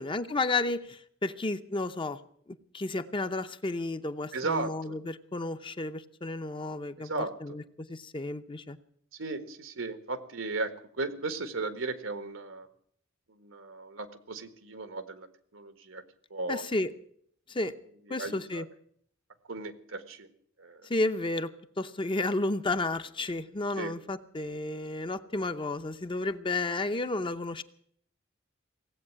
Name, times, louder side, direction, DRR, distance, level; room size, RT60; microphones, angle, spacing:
voice 1, 0.0-2.2 2.5-8.8 16.5-16.9 17.5-17.7 18.1-18.7 20.8-21.5 21.8-27.6, left 2 dB, 25° left, 10 dB, 0.7 m, -32 dB
voice 2, 4.3-5.0 7.0-7.3 9.1-12.7 13.3-15.3 15.5-16.0 16.3-16.6 18.2-18.6 19.5-20.3 20.6-20.9 23.8-23.9, right 3 dB, 90° right, 10 dB, 1.6 m, -36 dB
17.5 x 8.3 x 9.7 m, 0.64 s
head